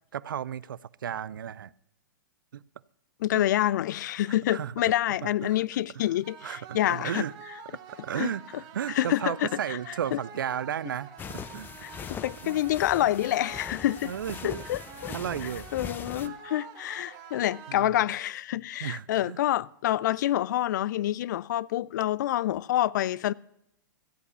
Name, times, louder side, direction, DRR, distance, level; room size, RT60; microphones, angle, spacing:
voice 1, 0.1-1.7 2.5-2.6 3.3-3.5 4.3-4.7 5.2-5.6 6.0-6.1 6.4-7.3 7.7-7.8 8.0-11.7 12.4-12.6 14.0-14.6 15.1-15.7 16.2-16.4 17.7-18.0 18.8-19.4, right 9 dB, 80° right, 0.5 m, -34 dB
voice 2, 3.2-7.2 8.2-8.3 8.9-9.8 10.1-10.2 11.8-14.1 14.4-15.1 15.7-23.3, left 13 dB, 60° left, 0.4 m, -27 dB
sound 1, 6.2-18.2, right 6 dB, 35° right, 1.7 m, -47 dB
sound 2, 11.2-16.3, left 7 dB, 20° left, 0.7 m, -41 dB
14.0 x 8.5 x 6.7 m
hypercardioid pair, 125°, 11 cm